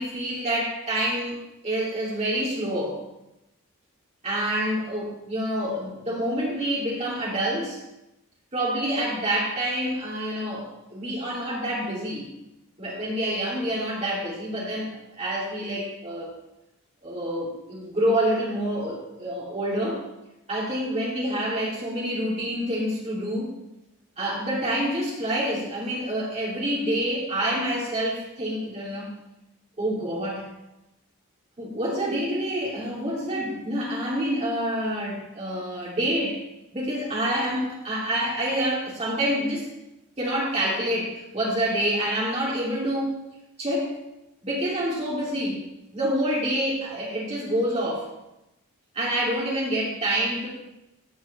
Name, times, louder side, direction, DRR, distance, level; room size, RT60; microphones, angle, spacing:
voice 1, 0.0-1.4 1.6-3.0 4.2-7.8 8.5-12.3 12.8-16.3 17.0-20.0 20.5-23.5 24.2-29.1 29.8-30.5 31.6-36.4 36.7-39.7 40.2-43.1 43.6-43.9 44.4-45.6 45.9-48.1 48.9-50.5, right 1 dB, 30° right, -6 dB, 3.1 m, -27 dB
14.5 x 8.7 x 3.4 m, 0.91 s
head